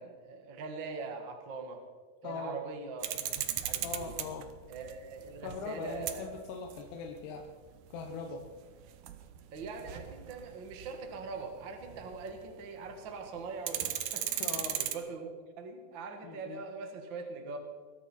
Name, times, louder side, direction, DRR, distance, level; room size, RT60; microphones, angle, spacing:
voice 1, 0.0-1.8 2.2-4.1 4.7-6.3 9.5-17.6, right 4 dB, 55° right, 4 dB, 1.2 m, -42 dB
voice 2, 2.2-2.6 3.8-4.5 5.4-7.5 7.9-8.4 14.4-14.8 16.2-16.6, left 4 dB, 75° left, 2 dB, 3.1 m, -40 dB
sound 1, 3.0-12.6 12.9-13.0 13.3-14.9, right 11 dB, 85° right, 1.8 m, -38 dB
22.0 x 13.5 x 4.3 m, 1.5 s
omnidirectional pair, 4.9 m